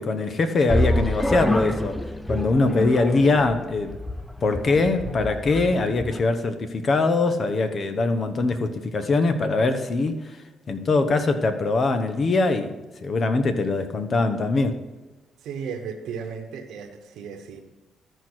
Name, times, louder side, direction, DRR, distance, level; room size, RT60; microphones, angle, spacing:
voice 1, 0.0-2.0 2.3-3.9 4.4-10.4 10.7-12.7 13.0-14.8, left 3 dB, 45° left, 9 dB, 1.1 m, -22 dB
sound 1, 0.7-6.2, left 1 dB, 5° left, 0.5 m, -27 dB
voice 2, 15.4-17.6, right 6 dB, 80° right, 3 dB, 1.1 m, -35 dB
13.5 x 4.5 x 6.2 m, 1.1 s
cardioid pair, 90°, 0 cm